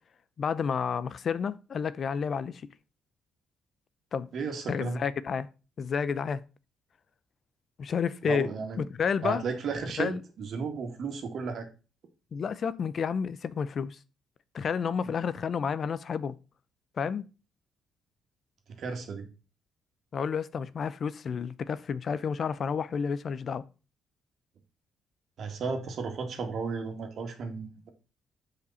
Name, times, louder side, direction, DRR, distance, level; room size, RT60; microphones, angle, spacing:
voice 1, 0.4-2.7 4.1-4.3 4.7-5.5 5.8-6.4 7.8-8.5 8.8-9.4 10.0-10.2 12.3-14.0 14.5-16.4 17.0-17.2 20.1-23.7, left 6 dB, 50° left, 0.6 m, -30 dB
voice 2, 4.3-5.1 8.2-8.8 9.2-11.7 18.8-19.3 25.4-27.9, right 5 dB, 60° right, 2.0 m, -34 dB
6.9 x 5.1 x 5.6 m
cardioid pair, 90°, 0 cm